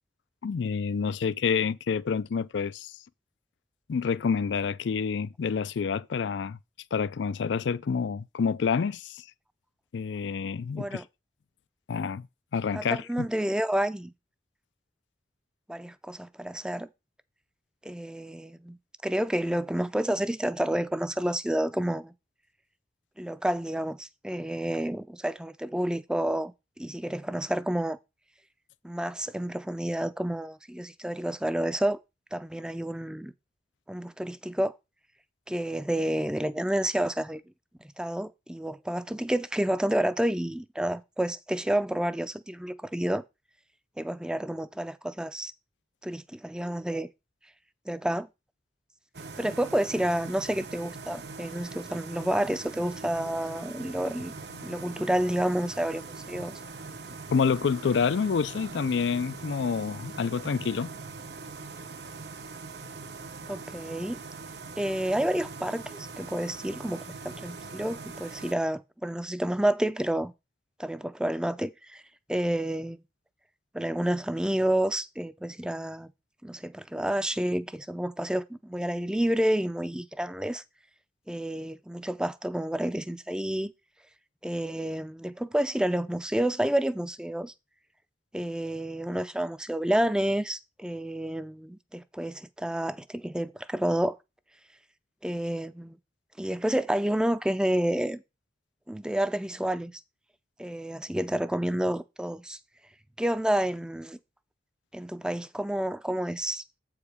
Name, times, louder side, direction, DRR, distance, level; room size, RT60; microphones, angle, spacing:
voice 1, 0.4-3.0 3.9-6.6 6.9-9.2 9.9-11.0 11.9-12.3 12.5-13.3 57.3-60.9, left 6 dB, 80° left, 0.4 m, -28 dB
voice 2, 12.7-14.1 15.7-16.9 17.8-18.8 19.0-22.1 23.2-28.0 28.8-32.0 32.3-33.3 33.9-34.7 35.5-37.4 38.0-43.2 44.0-45.5 46.0-47.1 47.9-48.3 49.4-54.3 54.6-56.5 63.5-64.2 64.8-70.3 70.8-72.0 72.3-73.0 73.7-76.1 76.4-80.6 81.3-83.7 84.4-87.5 88.3-94.2 95.2-96.0 96.4-98.2 98.9-99.9 100.6-102.6 103.2-104.2 104.9-106.8, right 1 dB, 5° right, 0.4 m, -29 dB
sound 1, 49.1-68.5, right 4 dB, 65° right, 1.0 m, -42 dB
8.0 x 4.8 x 4.9 m
head